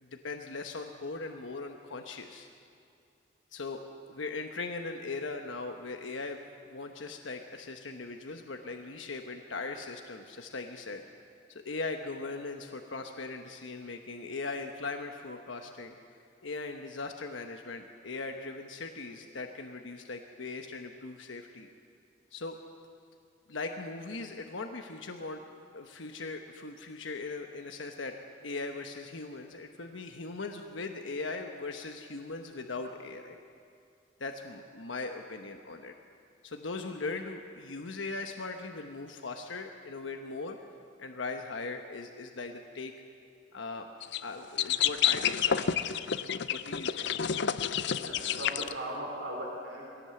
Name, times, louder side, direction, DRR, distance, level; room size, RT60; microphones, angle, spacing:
voice 1, 0.0-2.5 3.5-3.8 4.1-11.0 11.5-16.0 16.4-21.7 22.3-22.6 23.5-25.4 25.7-28.2 28.4-33.4 34.2-35.9 36.4-40.6 41.0-42.9 43.5-43.9 44.2-45.9 46.5-47.3 48.3-48.4, left 3 dB, 90° left, 4 dB, 1.1 m, -39 dB
sound 1, 44.0-44.2 44.6-48.7, left 8 dB, 65° left, 0.6 m, -29 dB
voice 2, 47.9-50.0, right 1 dB, 70° right, -1 dB, 4.2 m, -38 dB
22.0 x 17.0 x 7.7 m, 2.4 s
head